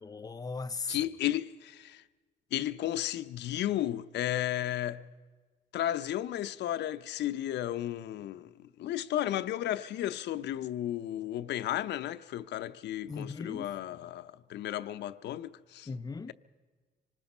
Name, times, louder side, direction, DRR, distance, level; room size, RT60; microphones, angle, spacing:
voice 1, 0.0-1.0 13.1-13.7 15.9-16.3, left 4 dB, 20° left, 0.5 m, -38 dB
voice 2, 0.9-2.0 2.5-5.1 5.7-15.9, left 12 dB, 85° left, 0.7 m, -34 dB
25.5 x 19.5 x 5.4 m
cardioid pair, 135°, 18 cm